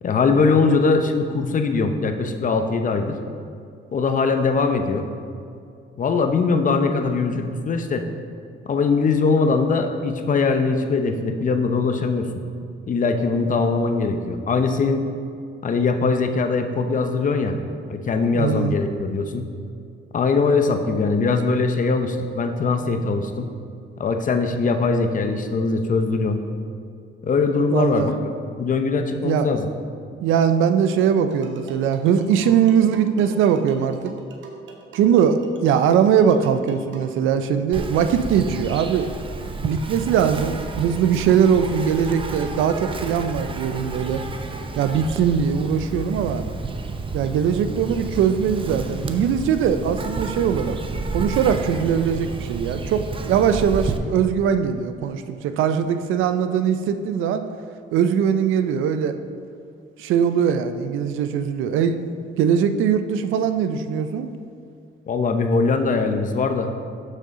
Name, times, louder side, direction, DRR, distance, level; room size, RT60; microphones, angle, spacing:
voice 1, 0.0-3.2 3.9-5.1 6.0-8.0 8.7-12.4 12.9-15.0 15.6-17.6 17.9-19.5 20.1-23.5 24.0-26.4 27.2-28.3 28.6-29.7 65.1-66.7, left 4 dB, 40° left, 6 dB, 0.7 m, -21 dB
voice 2, 18.3-18.7 27.7-28.1 29.2-29.5 30.2-34.1 34.9-39.1 39.6-44.2 44.7-46.4 47.1-50.8 51.1-57.4 57.9-59.1 60.0-64.3, right 7 dB, 85° right, 10 dB, 0.5 m, -21 dB
sound 1, 31.3-37.2, right 3 dB, 70° right, 0.9 m, -43 dB
Insect, 37.7-54.0, right 3 dB, 25° right, 0.6 m, -31 dB
6.9 x 6.4 x 3.7 m, 2.4 s
cardioid pair, 90°, 20 cm